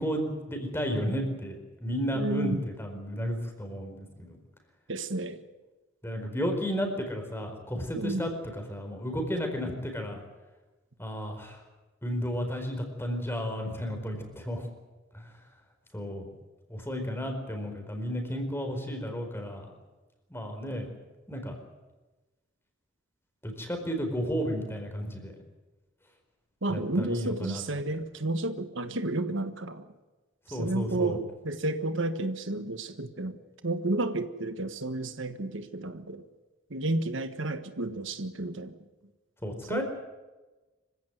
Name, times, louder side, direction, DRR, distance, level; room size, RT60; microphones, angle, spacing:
voice 1, 0.0-4.4 6.0-10.2 11.0-11.6 12.0-14.7 15.1-15.3 15.9-16.3 16.7-19.7 20.3-20.9 21.3-21.5 23.4-25.3 26.7-27.6 30.5-31.2 39.4-39.8, equal, 10° left, 4 dB, 4.6 m, -33 dB
voice 2, 2.1-2.6 4.9-5.4 7.9-8.3 26.6-29.9 30.5-36.3 36.7-38.8 39.7-39.8, right 2 dB, 70° right, 10 dB, 1.5 m, -31 dB
25.5 x 16.0 x 9.4 m, 1.2 s
head